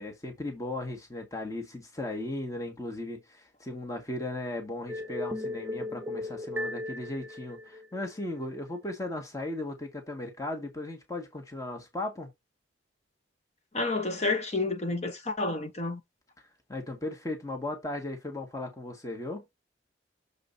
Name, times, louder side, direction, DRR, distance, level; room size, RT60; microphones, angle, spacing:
voice 1, 0.0-12.3 16.7-19.4, left 2 dB, 15° left, 1.8 m, -36 dB
sound 1, 4.9-8.2, left 1 dB, 10° right, 1.3 m, -36 dB
voice 2, 13.7-16.0, left 3 dB, 35° left, 1.6 m, -30 dB
7.1 x 5.0 x 3.9 m
head